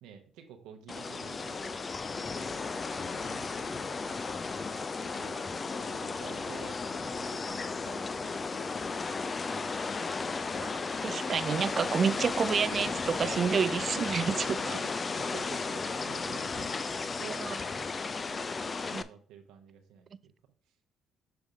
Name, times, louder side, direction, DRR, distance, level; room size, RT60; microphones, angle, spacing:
voice 1, 0.0-1.8 2.1-4.4 4.7-5.4 5.7-8.7 9.5-9.7 14.2-16.8 17.0-17.9 18.2-20.3, right 8 dB, 85° right, 0.9 m, -51 dB
sound 1, 0.9-19.0, left 4 dB, 35° left, 0.5 m, -34 dB
voice 2, 10.6-14.8 17.2-17.6 18.9-19.0, right 6 dB, 45° right, 0.3 m, -30 dB
6.9 x 3.5 x 5.0 m
supercardioid pair, 70°, 0 cm